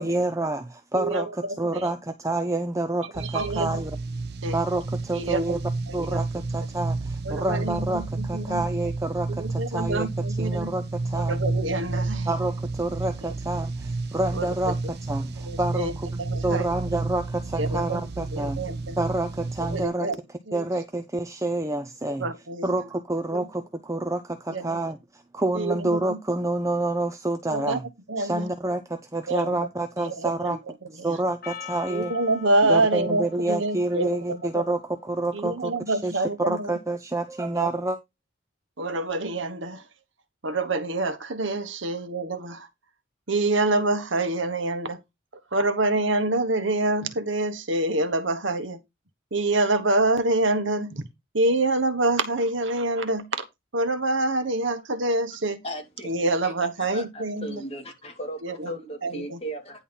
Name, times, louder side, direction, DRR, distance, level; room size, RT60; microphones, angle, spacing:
voice 1, 0.0-3.9 4.5-5.6 5.9-10.1 10.4-11.4 12.3-16.1 16.4-18.6 19.0-20.1 20.5-22.3 22.6-27.8 28.2-30.6 30.9-32.1 32.7-38.0, right 2 dB, 15° right, 0.6 m, -28 dB
voice 2, 0.9-1.9 3.0-3.8 4.4-4.6 5.1-6.3 7.2-8.6 9.3-10.7 11.1-12.3 13.2-13.3 14.3-14.9 15.4-16.7 17.5-18.0 18.3-19.0 19.7-20.2 20.5-20.7 22.1-22.7 23.3-23.5 24.5-24.8 25.5-26.2 27.5-27.8 28.1-28.5 29.3-29.7 30.0-31.2 31.9-34.7 35.3-36.7 37.5-37.7 38.8-39.9 40.4-42.7 43.3-45.0 45.5-48.8 49.3-51.1 51.3-53.4 53.7-55.6 56.0-57.6 58.4-58.7 59.0-59.4, right 2 dB, 70° right, 1.4 m, -27 dB
sound 1, 3.1-19.9, right 3 dB, 55° right, 0.8 m, -31 dB
Percussion, 31.4-36.0, left 7 dB, 45° left, 1.1 m, -44 dB
voice 3, 55.6-56.1 56.4-56.5 56.9-59.8, right 1 dB, 30° left, 2.8 m, -36 dB
10.0 x 4.3 x 5.5 m
head